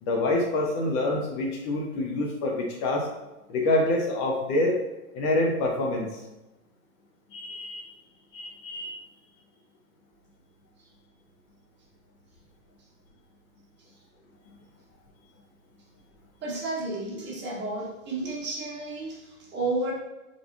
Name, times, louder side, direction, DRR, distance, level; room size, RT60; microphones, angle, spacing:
voice 1, 0.0-3.1 3.5-4.8 5.1-6.2 7.3-7.9 8.3-8.9, left 2 dB, 40° left, 0 dB, 0.7 m, -26 dB
voice 2, 16.4-19.9, right 2 dB, 25° right, -4 dB, 1.2 m, -32 dB
3.6 x 3.4 x 2.4 m, 1.0 s
hypercardioid pair, 100°, 42 cm